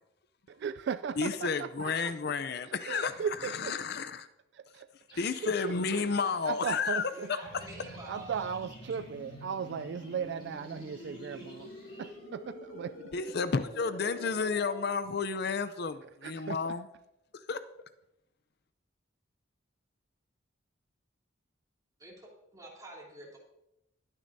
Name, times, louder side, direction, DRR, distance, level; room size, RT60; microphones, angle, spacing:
voice 1, 0.6-2.3 2.6-3.8 4.5-7.3 7.8-13.1 16.0-16.8, right 6 dB, 60° right, 13 dB, 0.3 m, -38 dB
voice 2, 1.2-3.1 3.4-4.3 5.2-7.1 13.1-16.9 17.5-17.6, left 5 dB, 55° left, 11 dB, 0.5 m, -31 dB
sound 1, 5.1-12.1, left 1 dB, 25° left, 5.4 m, -58 dB
voice 3, 7.1-8.5 22.0-23.4, right 2 dB, 20° right, -3 dB, 3.2 m, -48 dB
sound 2, 7.4-14.8, left 1 dB, 85° left, 4.9 m, -47 dB
20.5 x 9.8 x 2.7 m, 0.86 s
head